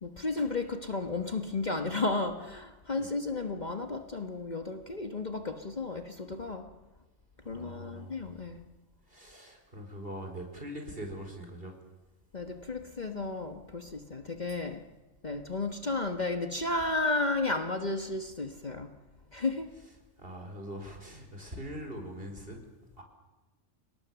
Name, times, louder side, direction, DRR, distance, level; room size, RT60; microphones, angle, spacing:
voice 1, 0.0-6.7 7.4-8.6 12.3-14.8 15.2-18.9 19.3-19.7, left 3 dB, 35° left, 6 dB, 1.4 m, -33 dB
voice 2, 7.4-8.2 9.1-11.7 20.2-22.6 23.0-23.1, equal, 45° right, 4 dB, 4.9 m, -42 dB
30.0 x 18.5 x 7.1 m, 1.1 s
omnidirectional pair, 1.3 m